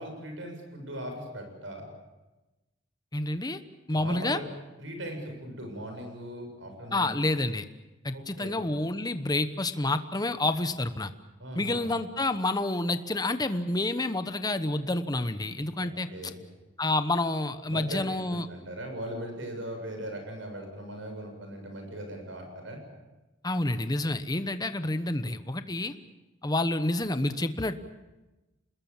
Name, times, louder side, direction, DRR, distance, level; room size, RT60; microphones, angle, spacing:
voice 1, 0.0-1.9 3.9-4.5 4.8-7.2 8.1-8.6 11.4-11.9 15.8-16.4 17.7-18.0 18.5-22.8, right 1 dB, 80° right, 4 dB, 7.3 m, -39 dB
voice 2, 3.1-3.6 3.9-4.4 6.9-7.6 8.0-11.1 11.5-16.1 16.8-18.5 23.4-25.9 26.4-27.8, left 2 dB, 20° left, 10 dB, 1.1 m, -29 dB
27.5 x 21.0 x 7.3 m, 1.1 s
head